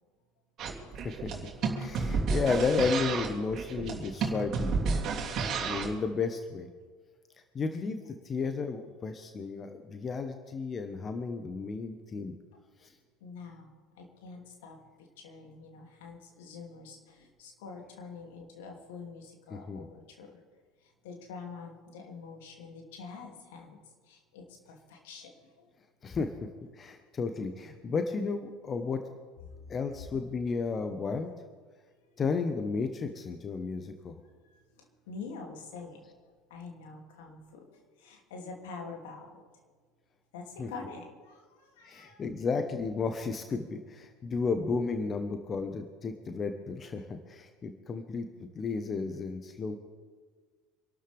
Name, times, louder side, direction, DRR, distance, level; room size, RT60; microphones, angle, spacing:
sound 1, 0.6-6.0, right 4 dB, 45° right, 3.2 m, -31 dB
voice 1, 0.8-1.3 1.8-5.0 5.6-6.7 7.5-12.3 12.8-12.9 19.5-19.9 26.0-26.5 26.7-29.0 29.7-31.3 32.2-34.1 40.6-40.7 41.8-49.8, left 4 dB, 30° left, 7 dB, 1.3 m, -33 dB
voice 2, 13.2-14.8 15.2-20.4 21.0-23.8 24.1-25.7 29.5-29.7 34.5-36.0 36.5-37.6 38.0-39.4 40.3-42.2, left 4 dB, 70° left, 2 dB, 2.9 m, -46 dB
26.5 x 12.5 x 3.6 m, 1.6 s
figure-of-eight pair, 70°, 0 cm